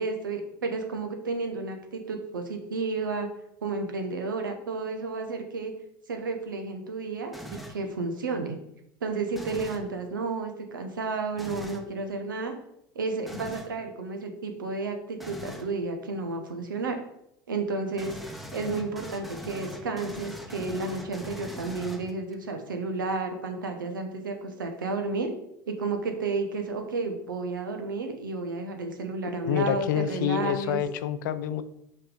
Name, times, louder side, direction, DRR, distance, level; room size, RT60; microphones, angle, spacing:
voice 1, 0.0-3.3 3.6-5.7 6.1-8.6 9.0-12.5 12.9-17.0 17.5-18.2 18.5-25.3 25.7-30.8, right 3 dB, 85° right, 5 dB, 0.9 m, -32 dB
sound 1, 7.3-7.9 9.3-9.9 11.4-11.9 13.3-13.8 15.2-15.7 18.0-22.3, left 1 dB, ahead, 0.9 m, -41 dB
voice 2, 29.4-31.6, left 10 dB, 75° left, 12 dB, 0.5 m, -27 dB
5.8 x 3.3 x 5.2 m, 0.78 s
hypercardioid pair, 80°, 11 cm